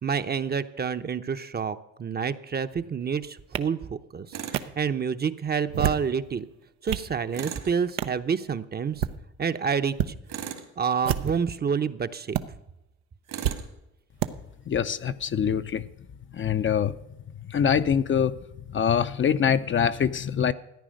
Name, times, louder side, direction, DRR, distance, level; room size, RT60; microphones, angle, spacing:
voice 1, 0.0-6.4 6.8-9.0 9.4-10.1 10.8-12.4, right 6 dB, 30° right, 10 dB, 0.7 m, -28 dB
sound 1, 3.5-3.6 4.5-4.6 5.6-6.1 6.6-7.1 8.0-8.2 8.8-9.2 9.9-10.1 11.0-11.5 12.3-12.4 13.4-13.6 14.2-14.3, right 11 dB, 90° right, 0.8 m, -28 dB
Tools, 4.3-4.7 7.3-7.7 10.3-10.7 13.3-13.7, right 9 dB, 70° right, 2.2 m, -36 dB
voice 2, 14.7-15.9 16.3-16.9 17.5-18.4 18.7-20.5, left 8 dB, 35° left, 11 dB, 0.6 m, -24 dB
14.0 x 9.7 x 6.4 m, 0.89 s
supercardioid pair, 80°, 33 cm